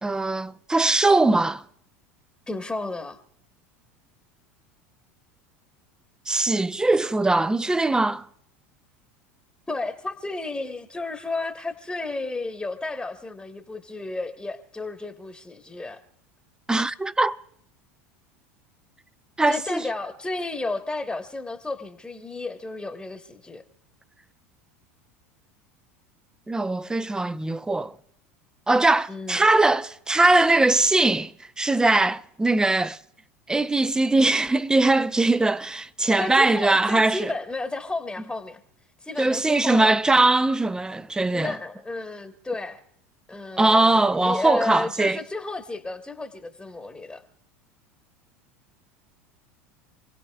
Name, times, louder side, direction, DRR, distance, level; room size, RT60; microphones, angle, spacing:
voice 1, 0.0-1.6 6.3-8.3 16.7-17.4 19.4-19.9 26.5-27.9 28.7-33.0 33.5-37.3 39.2-41.6 43.6-45.2, right 2 dB, 10° right, 0.5 m, -21 dB
voice 2, 2.5-3.2 9.7-16.0 19.5-23.6 29.1-29.4 36.2-38.6 39.0-40.0 41.3-42.8 43.3-47.2, left 3 dB, 10° left, 1.2 m, -32 dB
28.5 x 17.5 x 2.3 m
hypercardioid pair, 85°, 7 cm